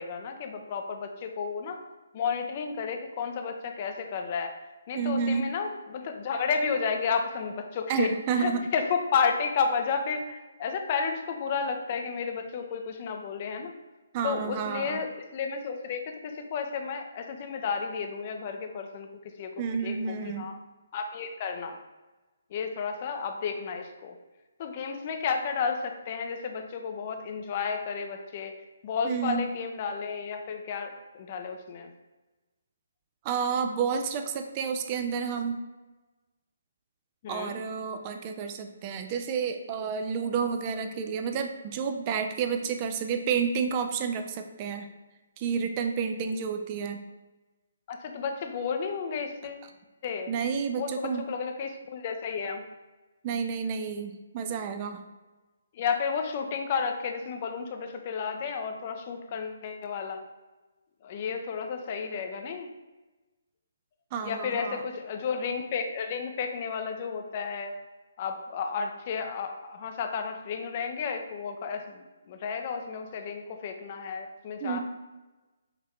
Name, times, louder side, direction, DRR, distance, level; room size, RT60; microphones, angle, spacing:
voice 1, 0.0-1.8 2.1-4.6 4.9-8.1 8.4-13.7 14.2-19.5 19.8-19.9 20.2-20.5 20.9-21.8 22.5-24.2 24.6-28.5 28.8-31.9 37.2-37.6 47.9-49.6 50.0-50.3 50.8-52.6 55.7-60.2 61.0-62.7 64.2-67.7 68.2-74.8, left 6 dB, 35° left, 5 dB, 0.5 m, -32 dB
voice 2, 4.9-5.5 7.9-8.7 14.1-15.0 19.6-20.5 29.0-29.5 33.2-35.6 37.3-44.9 45.4-47.0 50.3-51.3 53.2-55.0 64.1-64.8 74.6-74.8, right 6 dB, 30° right, 6 dB, 0.3 m, -30 dB
5.0 x 2.7 x 3.1 m, 1.2 s
figure-of-eight pair, 140°, 0 cm